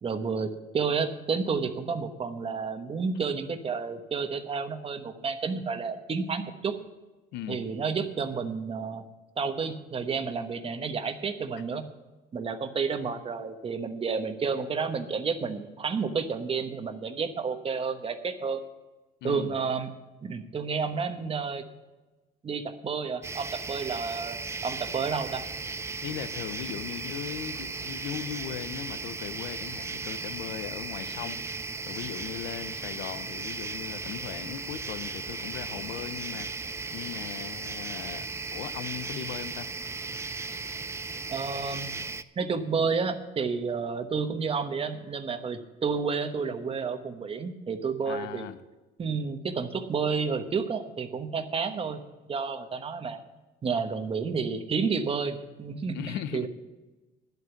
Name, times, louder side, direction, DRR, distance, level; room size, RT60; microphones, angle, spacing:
voice 1, 0.0-6.7 7.5-9.0 9.4-11.8 12.3-18.6 19.2-19.9 20.2-21.6 22.4-25.4 41.3-41.9 42.4-48.5 49.0-52.0 52.3-53.2 53.6-56.0 56.3-56.5, right 5 dB, 35° right, 8 dB, 1.2 m, -30 dB
voice 2, 7.3-7.7 19.2-19.6 26.0-31.4 31.9-39.7 48.0-48.6 55.9-56.5, left 10 dB, 85° left, 12 dB, 0.8 m, -38 dB
sound 1, 23.2-42.2, right 4 dB, 15° right, 0.4 m, -36 dB
11.0 x 8.1 x 7.2 m, 1.1 s
cardioid pair, 110°, 17 cm